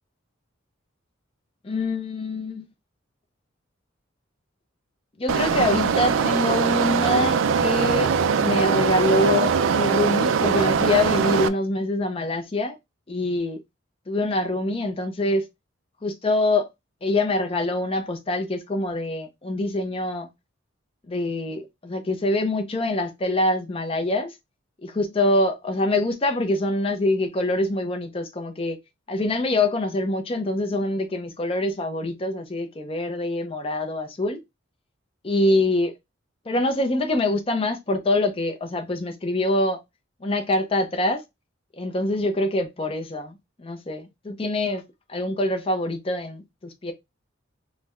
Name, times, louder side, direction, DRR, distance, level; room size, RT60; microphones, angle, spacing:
voice 1, 1.6-2.6 5.2-8.1 8.4-12.8 13.1-13.6 14.1-15.5 16.0-16.7 17.0-20.3 21.1-24.3 24.8-28.8 29.1-34.4 35.2-35.9 36.5-39.8 40.2-41.2 41.8-44.8 45.1-46.9, left 2 dB, 25° left, 0.5 m, -25 dB
sound 1, 5.3-11.5, right 6 dB, 70° right, 0.3 m, -21 dB
3.9 x 2.1 x 3.0 m
head